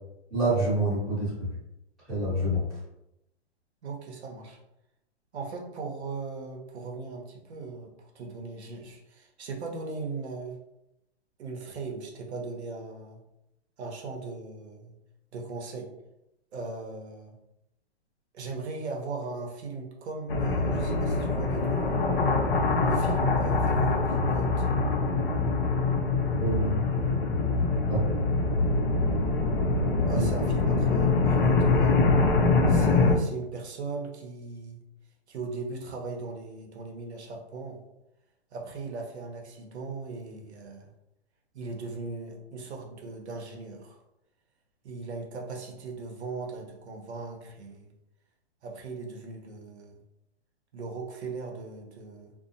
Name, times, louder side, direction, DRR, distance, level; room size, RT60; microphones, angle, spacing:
voice 1, 0.3-1.5 2.1-2.6 26.4-26.7 27.9-28.0 30.1-30.5, right 1 dB, ahead, -18 dB, 0.8 m, -27 dB
voice 2, 3.8-4.6 5.3-10.6 11.4-13.2 13.8-14.9 15.3-15.9 16.5-17.4 18.3-22.0 22.8-24.7 30.1-31.9 32.7-34.8 35.3-37.8 38.5-40.9 41.5-44.0 44.8-47.9 48.6-50.0 50.7-52.3, right 3 dB, 80° right, 1 dB, 0.7 m, -38 dB
sound 1, 20.3-33.1, left 3 dB, 55° left, 0.5 m, -24 dB
2.6 x 2.0 x 2.6 m, 0.87 s
hypercardioid pair, 170°, 33 cm